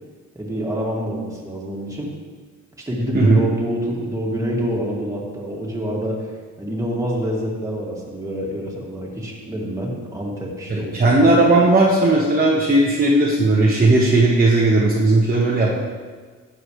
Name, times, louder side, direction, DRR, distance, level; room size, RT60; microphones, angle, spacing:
voice 1, 0.3-2.1 2.8-6.3 6.6-11.2, equal, 10° right, -4 dB, 2.4 m, -27 dB
voice 2, 10.7-15.8, right 2 dB, 30° right, -5 dB, 1.4 m, -16 dB
12.0 x 7.4 x 3.3 m, 1.5 s
cardioid pair, 90°, 30 cm